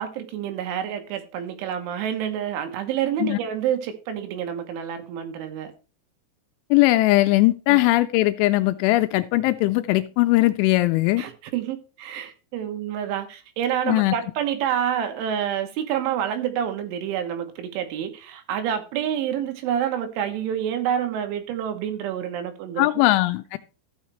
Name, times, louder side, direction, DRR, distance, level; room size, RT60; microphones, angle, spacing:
voice 1, 0.0-5.7 7.7-7.8 11.2-23.0, right 9 dB, 80° right, 3.5 m, -28 dB
voice 2, 6.7-11.2 13.9-14.1 22.8-23.6, left 18 dB, 85° left, 2.9 m, -19 dB
14.5 x 6.4 x 3.0 m
omnidirectional pair, 5.7 m